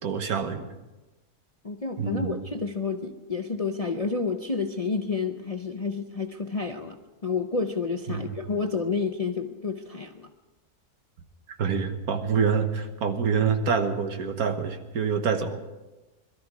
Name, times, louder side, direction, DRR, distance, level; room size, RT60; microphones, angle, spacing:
voice 1, 0.0-0.7 2.0-2.4 8.1-8.3 11.5-15.6, right 6 dB, 70° right, 7 dB, 1.6 m, -26 dB
voice 2, 1.6-10.3, left 4 dB, 35° left, 4 dB, 0.6 m, -30 dB
22.0 x 13.0 x 4.8 m, 1.1 s
omnidirectional pair, 1.6 m